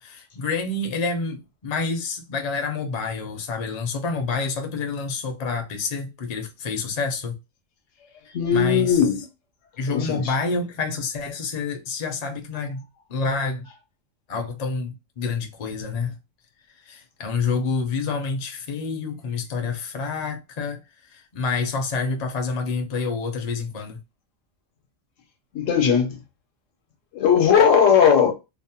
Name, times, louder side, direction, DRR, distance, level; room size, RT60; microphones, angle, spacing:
voice 1, 0.0-7.4 8.5-9.0 9.8-12.8 13.1-13.7 14.3-16.1 16.8-20.8 21.1-24.0, left 4 dB, 50° left, 0.5 m, -28 dB
voice 2, 8.3-9.2 9.9-10.2 25.5-26.2 27.1-28.3, left 7 dB, 80° left, 1.0 m, -18 dB
2.5 x 2.0 x 2.7 m
omnidirectional pair, 1.3 m